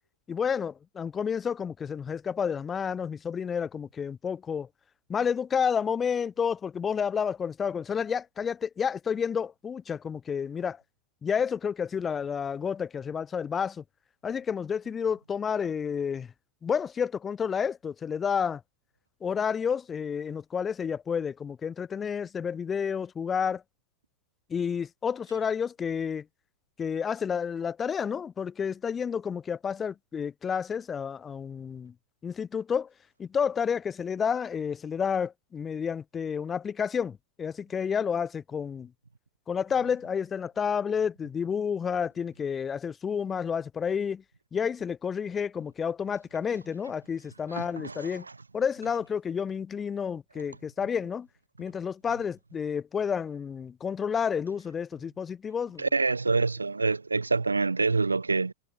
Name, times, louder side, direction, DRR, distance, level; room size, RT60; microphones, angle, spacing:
voice 1, 0.3-4.7 5.1-10.8 11.2-13.8 14.2-16.3 16.6-18.6 19.2-23.6 24.5-26.2 26.8-31.9 32.2-32.9 33.2-38.9 39.5-44.2 44.5-48.2 48.5-51.3 51.6-55.9, left 7 dB, 20° left, 1.2 m, -30 dB
voice 2, 47.5-48.2 55.8-58.5, right 3 dB, 80° right, 0.6 m, -26 dB
figure-of-eight pair, 90°, 0 cm